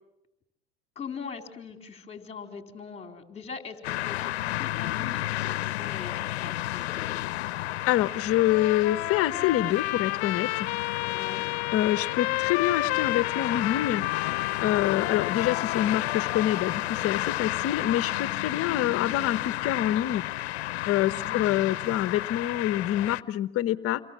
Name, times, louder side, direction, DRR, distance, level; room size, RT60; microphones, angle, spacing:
voice 1, 1.0-7.2 11.1-11.4 21.1-21.5, left 5 dB, 20° left, 6 dB, 4.3 m, -42 dB
sound 1, 3.8-23.2, left 16 dB, 85° left, 0.9 m, -32 dB
voice 2, 7.8-10.7 11.7-20.2 20.9-24.0, left 13 dB, 45° left, 13 dB, 1.2 m, -26 dB
Trumpet, 8.4-17.2, left 21 dB, 65° left, 1.1 m, -31 dB
29.0 x 23.0 x 7.6 m, 0.82 s
supercardioid pair, 110°, 31 cm